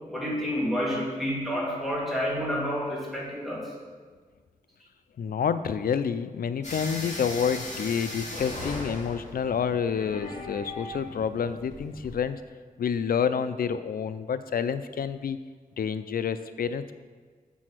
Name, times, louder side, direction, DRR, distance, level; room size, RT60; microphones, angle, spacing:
voice 1, 0.1-3.7, equal, ahead, -6 dB, 2.8 m, -29 dB
voice 2, 5.2-12.4 12.8-15.4 15.8-16.9, left 7 dB, 85° left, 12 dB, 0.4 m, -28 dB
sound 1, 6.6-12.2, left 1 dB, 55° left, 2.1 m, -38 dB
7.4 x 6.2 x 6.1 m, 1.5 s
wide cardioid pair, 100°, 15 cm